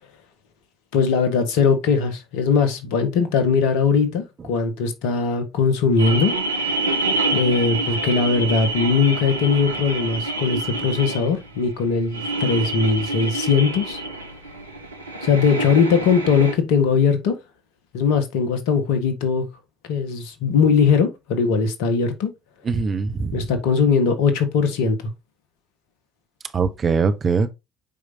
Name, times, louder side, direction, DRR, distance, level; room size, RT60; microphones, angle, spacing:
voice 1, 0.9-6.3 7.3-14.0 15.2-17.4 17.9-19.5 19.9-22.3 23.3-25.0, left 5 dB, 65° left, 1.6 m, -20 dB
sound 1, 6.0-16.5, right 2 dB, 90° right, 0.9 m, -27 dB
voice 2, 22.7-23.4 26.5-27.5, right 5 dB, 35° right, 1.0 m, -22 dB
9.3 x 5.0 x 2.8 m
figure-of-eight pair, 55°, 0 cm